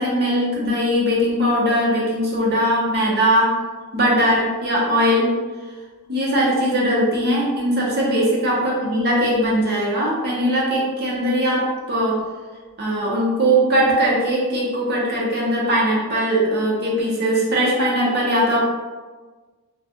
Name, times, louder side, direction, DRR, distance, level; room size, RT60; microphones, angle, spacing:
voice 1, 0.0-3.5 3.9-5.3 6.1-11.6 11.9-12.1 12.8-18.6, equal, 45° right, -4 dB, 0.8 m, -20 dB
2.6 x 2.3 x 3.5 m, 1.4 s
head